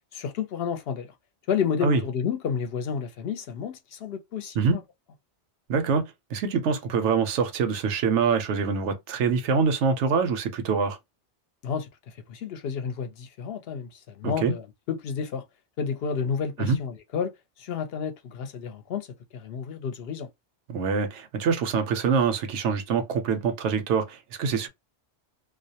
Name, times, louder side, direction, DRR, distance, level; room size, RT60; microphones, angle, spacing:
voice 1, 0.1-1.1 1.5-4.8 11.6-15.4 15.8-17.3 17.6-19.1 19.3-20.3, left 6 dB, 65° left, 0.7 m, -31 dB
voice 2, 5.7-6.0 6.3-11.0 14.2-14.5 16.6-16.8 20.7-24.7, right 5 dB, 85° right, 0.9 m, -25 dB
2.3 x 2.1 x 2.7 m
omnidirectional pair, 1.2 m